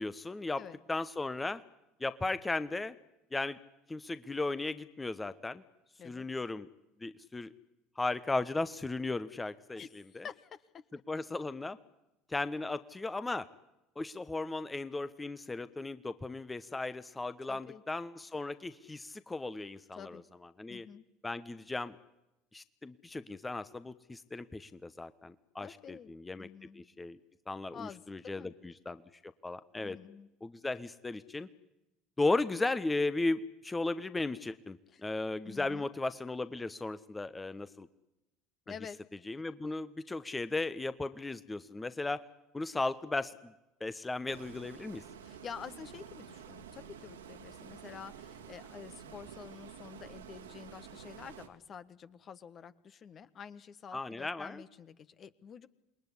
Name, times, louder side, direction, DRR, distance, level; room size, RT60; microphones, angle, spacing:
voice 1, 0.0-0.6 0.9-1.6 2.0-2.9 3.3-3.6 3.9-5.6 6.0-6.7 7.0-7.5 8.0-10.3 11.1-11.8 12.3-13.5 14.0-20.2 20.6-20.8 21.2-22.0 22.5-26.5 26.7-27.2 27.5-30.0 30.4-31.5 32.2-37.9 39.3-42.2 42.5-43.5 43.8-45.0 53.9-54.6, left 2 dB, 15° left, 13 dB, 1.1 m, -36 dB
voice 2, 9.8-10.6 17.5-17.8 19.9-20.2 20.7-21.0 25.6-26.1 26.4-26.9 27.7-28.5 29.8-30.3 34.9-35.0 35.4-35.9 38.7-39.0 45.2-55.7, left 7 dB, 40° left, 13 dB, 1.4 m, -48 dB
Stream, 44.3-51.5, right 8 dB, 80° right, 2.4 m, -50 dB
28.0 x 21.5 x 9.9 m, 0.93 s
figure-of-eight pair, 65°, 0 cm